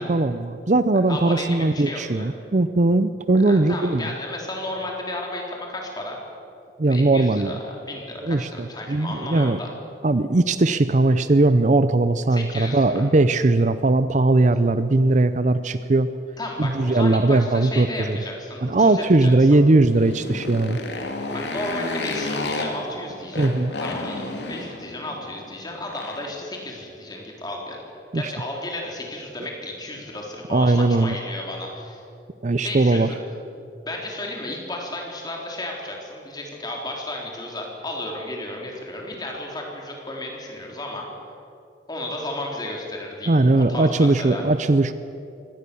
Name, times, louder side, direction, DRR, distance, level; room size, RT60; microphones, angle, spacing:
voice 1, 0.0-4.1 6.8-7.6 8.2-9.6 10.0-16.1 16.6-18.2 18.6-20.8 23.4-23.7 28.1-28.3 30.5-31.2 32.4-33.1 43.3-44.9, right 2 dB, 40° right, 13 dB, 0.6 m, -19 dB
voice 2, 1.1-1.5 1.7-2.3 3.5-6.2 6.9-9.7 12.3-12.9 16.4-19.6 21.3-23.5 23.8-27.8 28.1-32.0 32.6-33.2 33.8-41.1 41.9-44.4, left 1 dB, 20° left, 0 dB, 3.7 m, -33 dB
Motorcycle, 19.8-26.4, left 2 dB, 65° left, 2.9 m, -31 dB
24.0 x 18.0 x 7.0 m, 2.7 s
head